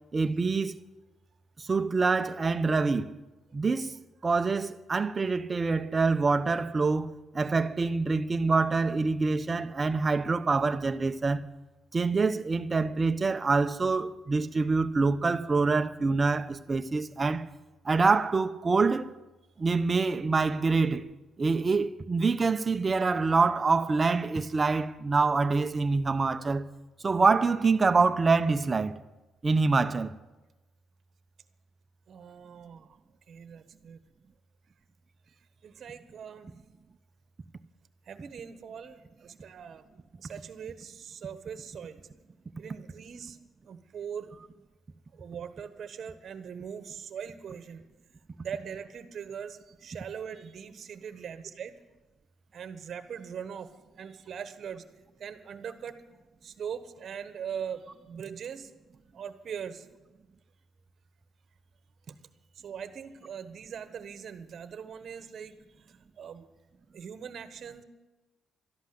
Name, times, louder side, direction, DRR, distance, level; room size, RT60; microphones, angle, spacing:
voice 1, 0.1-0.7 1.7-3.2 3.5-3.9 4.2-11.4 11.9-17.4 17.8-19.1 19.6-21.1 21.4-26.7 27.0-29.0 29.4-30.1, right 4 dB, 30° right, 0.8 m, -26 dB
voice 2, 32.1-33.0 33.3-34.0 35.3-36.6 38.0-39.9 40.2-42.1 42.6-43.4 43.6-44.3 45.1-47.8 48.3-51.7 52.5-53.7 54.0-54.8 55.2-56.0 56.4-58.7 59.1-59.9 62.1-62.2 62.5-66.5 66.9-67.8, right 7 dB, 55° right, 1.2 m, -41 dB
12.5 x 11.5 x 7.9 m
cardioid pair, 90°, 0 cm